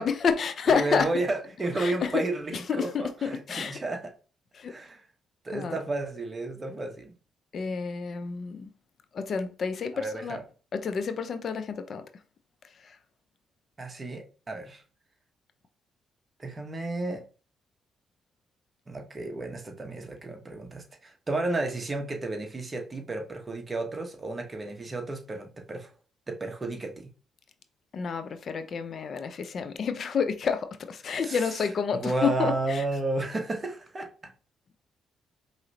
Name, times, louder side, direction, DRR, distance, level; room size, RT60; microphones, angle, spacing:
voice 1, 0.0-1.1 1.8-2.1 2.5-3.8 4.6-4.7 5.5-5.8 7.5-8.7 9.1-10.4 10.7-12.0 12.8-13.0 27.9-32.8, left 6 dB, 55° left, 0.5 m, -29 dB
voice 2, 0.7-4.1 4.7-5.0 5.4-7.1 9.9-10.4 13.8-14.8 16.4-17.2 18.9-25.9 26.3-27.1 31.2-34.1, right 2 dB, 30° right, 1.0 m, -32 dB
4.8 x 3.1 x 2.8 m
cardioid pair, 90°, 0 cm